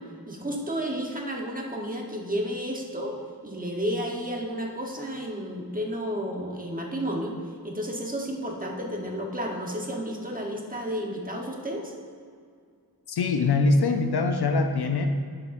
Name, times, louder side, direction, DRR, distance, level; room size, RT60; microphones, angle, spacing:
voice 1, 0.3-3.1 3.4-7.3 7.6-11.9, equal, 20° right, 0 dB, 1.1 m, -32 dB
voice 2, 13.1-15.1, left 3 dB, 75° left, 6 dB, 0.7 m, -23 dB
11.0 x 7.6 x 2.6 m, 2.1 s
wide cardioid pair, 105°, 38 cm